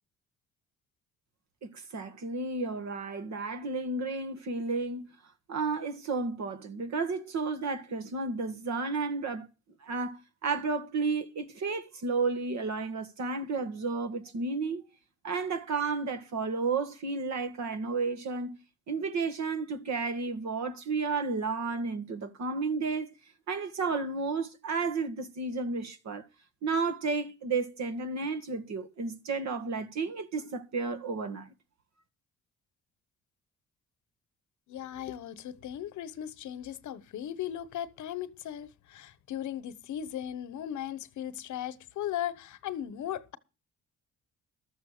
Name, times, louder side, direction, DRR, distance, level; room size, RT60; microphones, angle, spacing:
voice 1, 1.6-5.1 5.5-9.5 9.8-14.8 15.2-18.5 18.9-23.1 23.5-26.3 26.6-31.5, right 4 dB, 65° right, 1.9 m, -32 dB
voice 2, 34.7-43.4, left 11 dB, 75° left, 1.2 m, -37 dB
13.0 x 7.2 x 6.6 m
cardioid pair, 90°, 30 cm